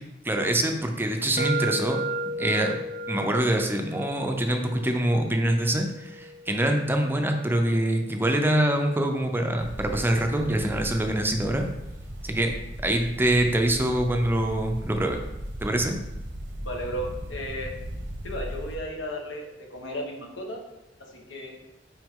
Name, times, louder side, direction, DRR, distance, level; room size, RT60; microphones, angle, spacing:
voice 1, 0.2-2.0 2.4-2.8 3.1-11.6 12.2-12.5 12.8-15.2 15.6-16.0, right 1 dB, 10° right, 4 dB, 0.5 m, -25 dB
sound 1, 1.4-9.2, right 1 dB, 50° right, 0.7 m, -36 dB
sound 2, 9.6-18.8, equal, 85° right, 1.0 m, -37 dB
voice 2, 16.6-17.7 18.2-20.6 21.1-21.6, equal, 80° left, 1 dB, 1.2 m, -34 dB
6.1 x 4.8 x 3.6 m, 0.92 s
head